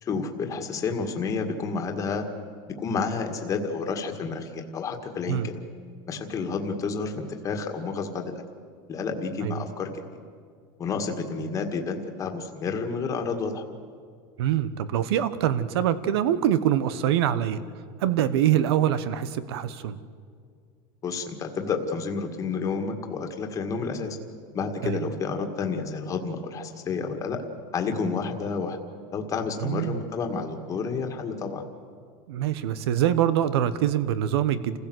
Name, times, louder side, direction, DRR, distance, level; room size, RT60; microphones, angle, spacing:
voice 1, 0.0-2.3 2.8-5.6 6.1-8.4 8.9-9.9 10.8-13.7 21.0-24.2 24.5-27.4 27.7-28.8 29.1-31.7, left 5 dB, 25° left, 4 dB, 1.9 m, -30 dB
voice 2, 14.4-17.6 18.0-20.0 24.8-25.1 29.6-30.0 32.3-34.8, right 10 dB, 90° right, 15 dB, 1.2 m, -24 dB
28.0 x 16.0 x 7.9 m, 2.2 s
supercardioid pair, 150°, 13 cm